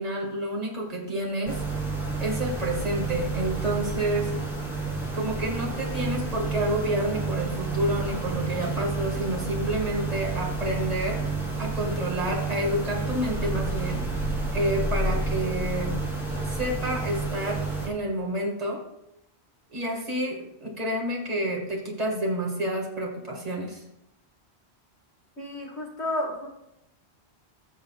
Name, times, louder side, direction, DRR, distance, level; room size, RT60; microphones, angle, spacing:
voice 1, 0.0-1.6 2.2-4.3 5.1-11.3 11.6-14.1 14.5-16.0 16.5-18.8 19.7-23.8, right 1 dB, 35° right, -1 dB, 2.0 m, -29 dB
sound 1, 1.5-17.9, right 3 dB, ahead, 3.2 m, -30 dB
voice 2, 25.4-26.5, left 1 dB, 85° left, 0 dB, 2.2 m, -31 dB
18.5 x 6.7 x 2.4 m, 0.85 s
omnidirectional pair, 1.1 m